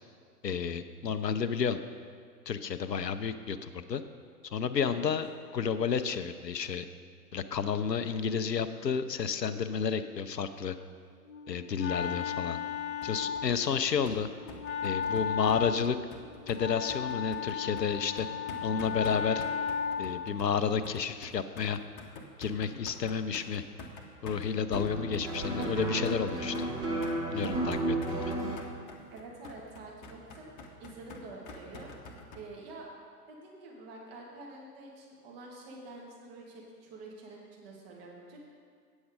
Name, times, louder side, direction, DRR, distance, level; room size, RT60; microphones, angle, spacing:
voice 1, 0.4-1.8 2.5-4.0 4.4-5.3 5.5-6.9 7.3-10.8 11.5-12.6 13.0-14.3 14.8-16.0 16.5-18.3 18.6-19.4 20.0-21.8 22.4-23.6 24.2-26.7 27.3-28.3, left 6 dB, 80° left, 10 dB, 0.7 m, -31 dB
Wind instrument woodwind instrument, 11.3-20.4, left 7 dB, 45° left, 0.4 m, -35 dB
sound 1, 13.0-32.4, left 2 dB, 30° left, 0.9 m, -48 dB
sound 2, 24.7-28.6, right 2 dB, 10° right, 0.7 m, -32 dB
voice 2, 29.1-31.9 32.3-32.9 33.3-38.5, right 2 dB, 35° right, -2 dB, 1.8 m, -47 dB
8.7 x 7.2 x 5.0 m, 2.1 s
figure-of-eight pair, 115°, 49 cm